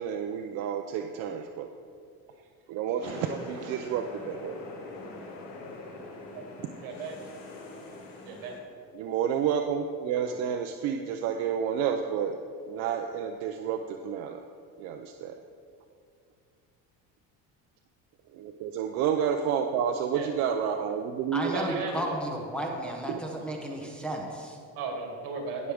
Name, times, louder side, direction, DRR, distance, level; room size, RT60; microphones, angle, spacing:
voice 1, 0.0-1.7 2.7-4.5 6.3-6.4 8.9-12.4 12.7-14.4 14.8-15.4 18.3-21.6 23.1-23.2 25.6-25.7, right 8 dB, 50° right, 5 dB, 0.5 m, -30 dB
sound 1, 3.0-8.6, left 2 dB, 55° left, 1.8 m, -43 dB
voice 2, 6.8-7.2 8.2-8.6 10.3-10.4 20.1-20.3 21.4-22.2 23.4-23.9 24.8-25.7, right 4 dB, 75° right, 1 dB, 2.2 m, -36 dB
voice 3, 21.3-24.6, right 1 dB, 5° left, -1 dB, 0.7 m, -33 dB
17.5 x 6.2 x 3.5 m, 2.3 s
cardioid pair, 175°, 33 cm